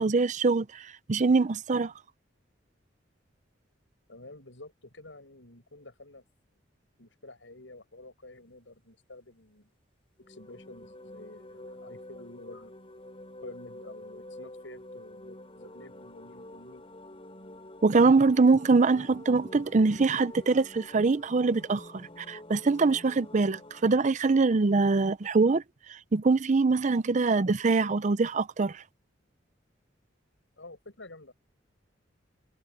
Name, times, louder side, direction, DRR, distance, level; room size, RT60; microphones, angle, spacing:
voice 1, 0.0-1.9 17.8-25.6 26.1-28.8, right 3 dB, 40° right, 0.5 m, -24 dB
voice 2, 4.1-6.2 7.0-9.7 10.3-12.8 13.4-16.8 30.6-31.3, left 2 dB, 85° left, 7.0 m, -49 dB
sound 1, 10.2-23.8, left 1 dB, 30° left, 6.5 m, -48 dB
head